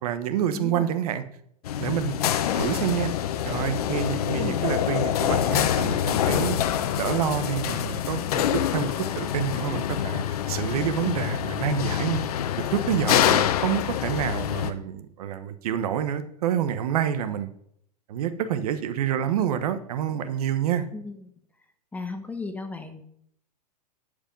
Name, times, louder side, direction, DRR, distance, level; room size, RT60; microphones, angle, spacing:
voice 1, 0.0-1.2 1.8-2.2 2.5-3.1 3.4-6.6 6.9-12.4 12.7-17.5 18.1-20.9, right 9 dB, 65° right, 11 dB, 1.0 m, -28 dB
voice 2, 0.5-0.9 4.4-4.7 11.0-11.3 20.9-21.3 21.9-23.1, left 3 dB, 5° left, 7 dB, 0.9 m, -36 dB
sound 1, 1.6-14.7, left 10 dB, 65° left, 0.8 m, -26 dB
11.5 x 5.1 x 5.3 m, 0.69 s
hypercardioid pair, 130°, 21 cm